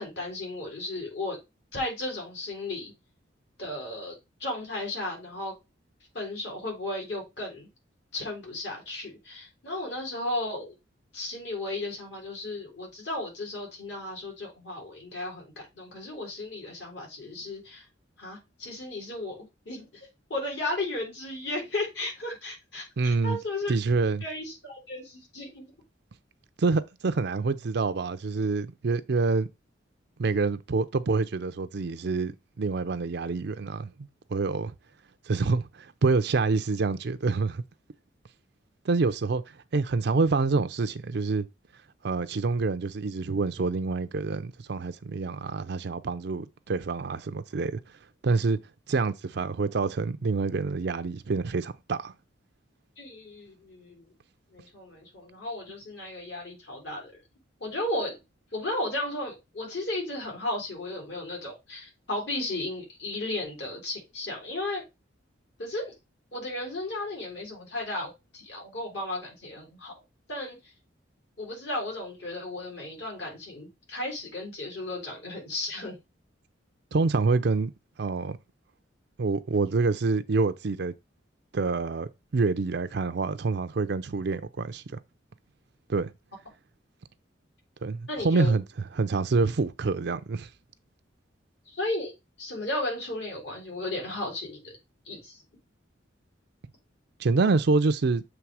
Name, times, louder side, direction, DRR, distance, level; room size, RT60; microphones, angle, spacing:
voice 1, 0.0-1.4 1.7-2.9 3.6-5.5 6.1-7.7 8.1-10.7 11.1-17.8 18.2-19.4 19.6-23.8 24.2-25.6 53.0-54.1 54.5-57.1 57.6-58.2 58.5-64.8 65.6-65.9 66.3-69.9 70.3-70.6 71.4-76.0 88.1-88.5 91.7-92.1 92.4-94.7 95.0-95.4, left 2 dB, 65° left, 3.4 m, -34 dB
voice 2, 23.0-23.4 23.7-24.2 26.6-29.5 30.2-32.3 32.6-33.9 34.3-34.7 35.3-37.6 38.8-41.5 42.0-47.7 48.2-48.6 48.9-52.1 76.9-77.7 78.0-78.4 79.2-80.9 81.5-85.0 85.9-86.1 87.8-88.6 88.9-90.5 97.2-98.2, right 4 dB, 60° right, 0.5 m, -26 dB
7.1 x 3.3 x 4.7 m
head